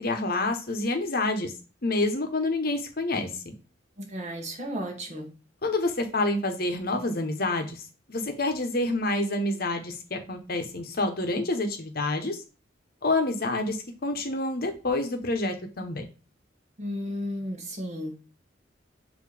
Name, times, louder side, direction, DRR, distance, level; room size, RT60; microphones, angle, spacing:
voice 1, 0.0-1.5 1.8-3.5 5.6-7.8 8.1-12.4 13.0-16.0, left 2 dB, 55° left, 5 dB, 1.1 m, -28 dB
voice 2, 4.0-5.3 16.8-18.2, equal, 40° right, 1 dB, 1.5 m, -34 dB
6.7 x 3.0 x 5.0 m, 0.33 s
head